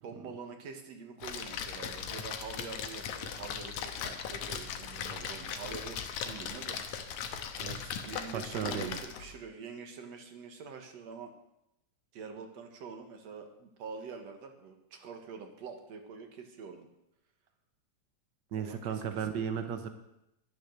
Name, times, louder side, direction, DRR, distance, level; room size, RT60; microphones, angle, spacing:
voice 1, 0.0-7.4 8.0-11.3 12.1-16.9 18.6-19.7, right 5 dB, 65° right, 5 dB, 2.5 m, -46 dB
Splash splatter, 1.2-9.4, left 7 dB, 85° left, 2.5 m, -39 dB
voice 2, 7.6-8.0 8.3-9.0 18.5-19.9, right 7 dB, 85° right, 9 dB, 0.9 m, -35 dB
12.0 x 11.5 x 6.7 m, 0.86 s
omnidirectional pair, 3.3 m